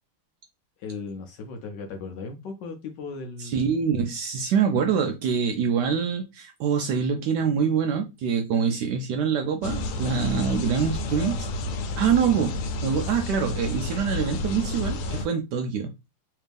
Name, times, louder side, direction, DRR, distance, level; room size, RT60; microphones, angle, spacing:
voice 1, 0.8-3.7, left 4 dB, 70° left, 1.1 m, -37 dB
voice 2, 3.4-11.5 12.0-15.9, right 7 dB, 85° right, 0.9 m, -25 dB
sound 1, 9.6-15.3, left 2 dB, 85° left, 1.5 m, -30 dB
3.4 x 3.1 x 3.4 m
omnidirectional pair, 2.4 m